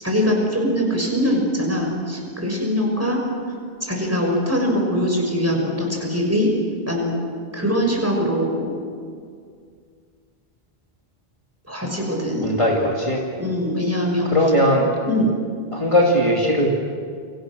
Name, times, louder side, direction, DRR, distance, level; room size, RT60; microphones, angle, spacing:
voice 1, 0.0-3.2 3.8-6.5 6.9-7.1 7.5-8.8 11.7-12.5 13.4-14.3 15.0-15.3, equal, 15° right, 0 dB, 6.2 m, -22 dB
voice 2, 12.4-13.2 14.2-14.9 15.7-16.7, equal, 30° left, -2 dB, 2.8 m, -19 dB
29.5 x 25.0 x 6.4 m, 2.1 s
omnidirectional pair, 1.0 m